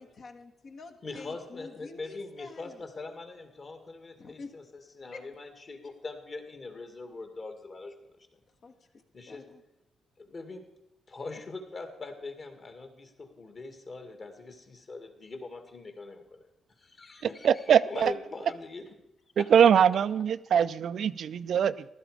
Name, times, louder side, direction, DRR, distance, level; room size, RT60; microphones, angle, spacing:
voice 1, 0.0-2.8 4.2-4.5 5.1-5.2 8.6-8.8 9.3-9.6, left 4 dB, 55° left, 6 dB, 1.5 m, -47 dB
voice 2, 1.0-8.3 9.1-9.4 10.2-10.7 11.1-16.2 16.8-18.9 19.4-19.5, left 3 dB, 40° left, 6 dB, 2.1 m, -42 dB
voice 3, 17.4-18.1 19.4-21.9, right 8 dB, 65° right, 14 dB, 0.4 m, -22 dB
15.0 x 12.5 x 5.0 m, 0.92 s
cardioid pair, 115°, 0 cm